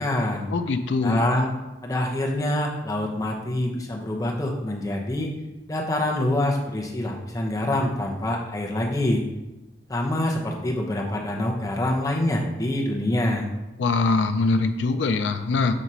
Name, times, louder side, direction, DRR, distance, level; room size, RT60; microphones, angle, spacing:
voice 1, 0.0-0.4 1.0-1.5 1.8-5.3 5.7-9.2 9.9-13.5, left 1 dB, 20° left, -1 dB, 0.8 m, -25 dB
voice 2, 0.5-1.3 13.8-15.8, left 3 dB, 85° left, 8 dB, 0.4 m, -23 dB
6.2 x 2.9 x 5.4 m, 1.0 s
head